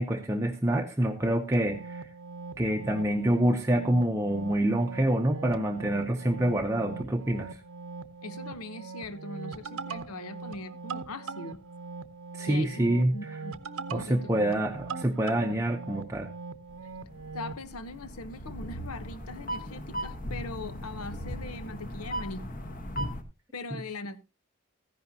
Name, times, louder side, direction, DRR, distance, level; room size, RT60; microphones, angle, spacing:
voice 1, 0.0-2.1 2.6-7.6 12.3-13.4 13.9-16.3 23.7-23.8, right 1 dB, 15° right, 0.6 m, -27 dB
sound 1, 1.5-17.6, right 4 dB, 75° right, 0.8 m, -41 dB
voice 2, 8.2-11.6 12.5-13.6 13.9-14.5 17.3-22.4 23.5-24.2, left 2 dB, 85° left, 0.9 m, -41 dB
sound 2, 16.7-23.2, equal, 40° left, 1.2 m, -38 dB
14.5 x 11.0 x 2.7 m
head